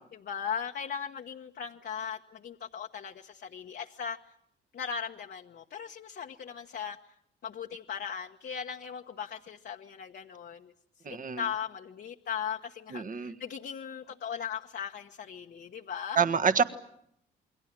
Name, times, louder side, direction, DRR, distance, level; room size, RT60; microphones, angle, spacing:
voice 1, 0.2-4.2 4.7-7.0 7.4-16.2, left 7 dB, 55° left, 2 dB, 1.2 m, -38 dB
voice 2, 11.0-11.4 12.9-13.3 16.1-16.6, right 6 dB, 40° right, 10 dB, 1.6 m, -26 dB
28.5 x 22.0 x 7.6 m, 0.73 s
cardioid pair, 90°, 20 cm